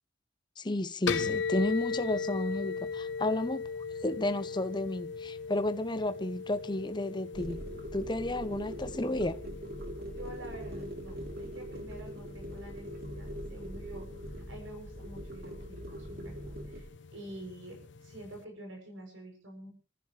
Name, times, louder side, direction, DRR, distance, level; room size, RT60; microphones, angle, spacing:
voice 1, 0.6-3.6 4.0-9.4, left 1 dB, 25° left, 0.8 m, -32 dB
sound 1, 1.1-18.4, left 5 dB, 65° left, 0.9 m, -40 dB
sound 2, 7.3-16.8, equal, 55° right, 3.2 m, -42 dB
voice 2, 10.2-19.7, right 1 dB, 85° right, 7.5 m, -48 dB
27.0 x 15.0 x 3.2 m
head